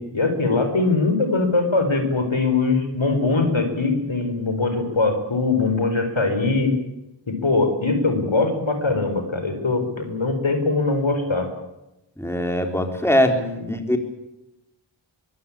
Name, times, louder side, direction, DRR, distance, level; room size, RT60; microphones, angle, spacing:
voice 1, 0.0-6.7 7.3-11.5 13.3-13.6, left 3 dB, 75° left, 7 dB, 4.7 m, -22 dB
voice 2, 12.2-13.4 13.7-14.0, left 1 dB, 5° left, 5 dB, 4.0 m, -21 dB
23.5 x 17.0 x 8.6 m, 0.92 s
wide cardioid pair, 45°, 47 cm